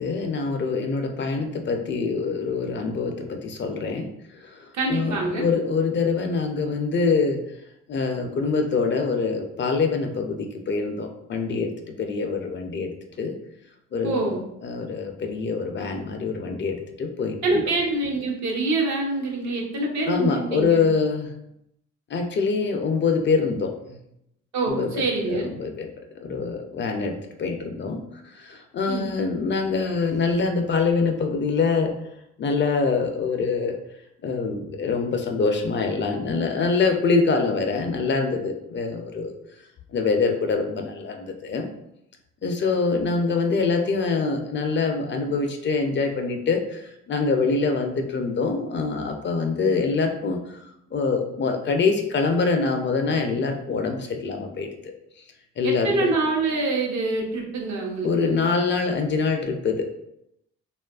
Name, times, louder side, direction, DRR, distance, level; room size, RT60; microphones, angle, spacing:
voice 1, 0.0-4.1 4.9-7.4 7.9-11.7 12.0-13.3 13.9-14.3 14.6-17.6 20.1-21.3 22.1-23.7 24.7-25.9 26.2-27.1 27.4-28.0 28.5-31.9 32.4-33.7 34.2-39.4 39.9-41.7 42.4-46.6 47.1-50.4 50.9-54.7 55.6-55.9 58.0-59.8, left 4 dB, 40° left, 4 dB, 0.4 m, -24 dB
voice 2, 4.7-5.5 14.0-14.5 17.4-20.8 24.5-25.5 28.9-29.1 55.6-58.4, right 3 dB, 65° right, 0 dB, 0.8 m, -25 dB
2.9 x 2.4 x 2.3 m, 0.80 s
cardioid pair, 90°, 30 cm